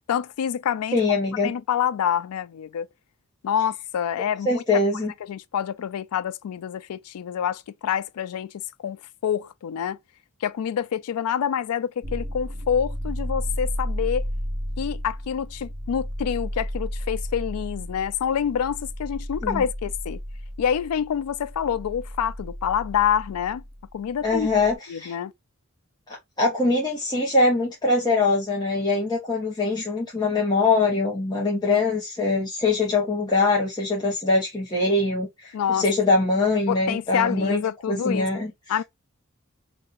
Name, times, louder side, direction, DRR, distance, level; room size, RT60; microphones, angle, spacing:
voice 1, 0.1-1.0 1.4-2.9 3.4-4.6 5.2-8.5 8.8-10.0 10.4-14.3 14.8-20.2 20.6-23.6 23.9-24.5 24.9-25.3 35.5-35.9 36.7-38.4 38.7-38.8, left 8 dB, 85° left, 0.3 m, -27 dB
voice 2, 0.9-1.5 4.4-5.1 19.4-19.6 24.2-25.1 26.4-37.6 37.9-38.5, left 3 dB, 20° left, 0.9 m, -23 dB
sound 1, 12.0-24.8, equal, 40° right, 1.1 m, -33 dB
2.8 x 2.7 x 3.8 m
head